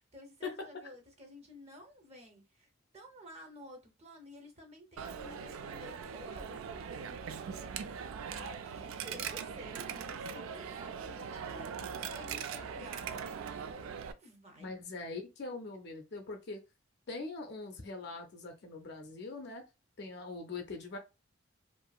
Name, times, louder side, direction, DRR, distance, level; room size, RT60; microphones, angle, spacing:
voice 1, 0.1-13.4 14.2-14.8, equal, 30° right, 0.6 m, -52 dB
Coin (dropping), 5.0-14.1, right 6 dB, 75° right, 0.3 m, -41 dB
voice 2, 14.6-16.6 17.1-19.6 20.0-21.0, left 3 dB, 50° left, 0.5 m, -42 dB
2.7 x 2.5 x 2.3 m
head